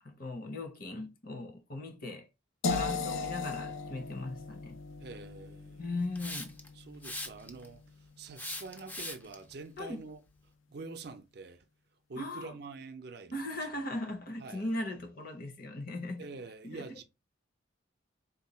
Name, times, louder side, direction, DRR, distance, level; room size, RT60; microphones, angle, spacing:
voice 1, 0.0-2.3 2.7-4.8 5.8-6.5 9.8-10.0 12.2-12.5 13.3-16.3 16.6-17.0, left 2 dB, 45° left, 0.8 m, -38 dB
sound 1, 2.6-8.5, left 4 dB, 85° left, 0.5 m, -38 dB
voice 2, 5.0-5.8 6.8-7.8 8.2-10.2 10.7-11.6 12.1-13.4 14.4-14.7 16.2-17.0, right 3 dB, 55° right, 0.5 m, -46 dB
Hiss, 6.2-6.7 7.0-7.7 8.4-9.3, left 1 dB, 10° left, 0.4 m, -40 dB
4.0 x 2.2 x 4.2 m
head